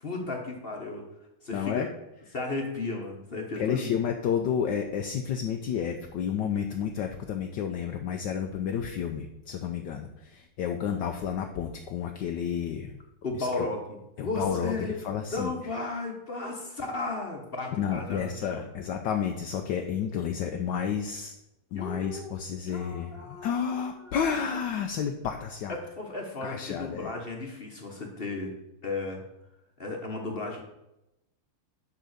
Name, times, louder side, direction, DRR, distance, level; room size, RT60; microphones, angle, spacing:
voice 1, 0.0-1.1 1.4-1.9 2.3-4.0 13.2-14.9 15.3-18.7 21.7-22.4 22.7-24.1 24.5-24.6 25.7-28.6 28.8-29.2 29.8-30.6, left 3 dB, 35° left, 1 dB, 1.0 m, -35 dB
voice 2, 1.5-1.9 3.6-13.0 13.4-13.7 14.2-15.5 17.7-21.3 21.7-25.8 26.4-27.1, left 8 dB, 70° left, 4 dB, 1.1 m, -31 dB
10.0 x 3.8 x 6.6 m, 0.90 s
omnidirectional pair, 2.4 m